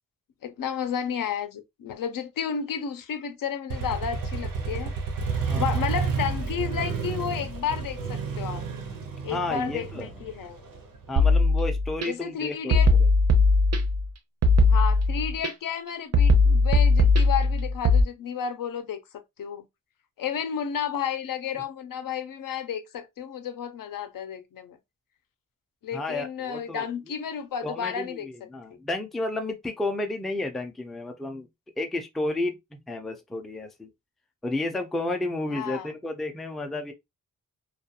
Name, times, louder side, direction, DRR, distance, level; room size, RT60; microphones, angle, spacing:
voice 1, 0.4-4.9 5.5-8.7 9.2-10.6 12.1-12.9 14.7-19.6 20.2-24.8 25.8-28.5 35.5-35.9, left 8 dB, 75° left, 0.5 m, -32 dB
Motorcycle, 3.7-11.3, right 5 dB, 80° right, 0.8 m, -30 dB
voice 2, 5.5-5.9 9.3-10.3 11.1-12.8 25.9-26.9 27.6-31.5 31.8-33.9 34.4-36.9, left 2 dB, ahead, 0.3 m, -32 dB
sound 1, 11.2-12.1 12.7-14.1 14.4-15.5 16.1-18.0, left 2 dB, 50° right, 0.5 m, -19 dB
2.3 x 2.2 x 2.8 m
wide cardioid pair, 130°, 34 cm